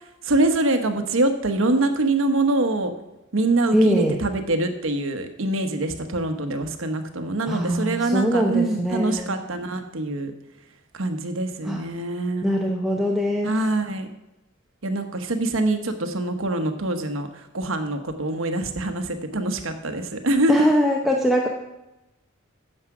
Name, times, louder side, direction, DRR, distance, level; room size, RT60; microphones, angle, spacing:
voice 1, 0.2-2.9 3.3-10.3 10.9-12.5 13.4-14.1 14.8-17.3 17.5-20.6, right 2 dB, 75° right, 7 dB, 1.2 m, -24 dB
voice 2, 3.7-4.2 7.4-9.3 11.6-11.8 12.4-13.6 20.5-21.5, equal, ahead, -1 dB, 0.8 m, -22 dB
9.8 x 7.4 x 5.9 m, 0.96 s
head